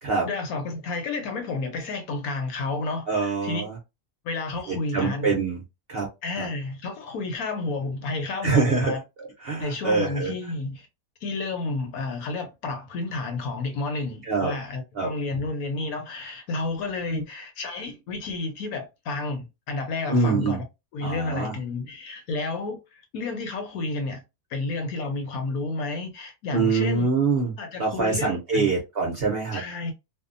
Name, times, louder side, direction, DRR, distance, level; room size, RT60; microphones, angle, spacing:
voice 1, 0.2-3.6 4.2-5.3 6.2-9.0 9.6-10.9 11.2-20.6 20.9-24.2 24.5-27.1 27.6-28.7 29.5-29.9, left 3 dB, 70° left, 1.1 m, -31 dB
voice 2, 3.1-3.8 4.7-5.6 5.9-6.1 6.4-6.5 8.4-9.0 9.4-10.3 14.2-14.5 15.0-15.1 17.1-17.2 20.1-20.6 21.0-21.5 26.5-27.5 27.8-29.6, right 4 dB, 55° right, 0.7 m, -24 dB
2.6 x 2.2 x 2.5 m
omnidirectional pair, 1.7 m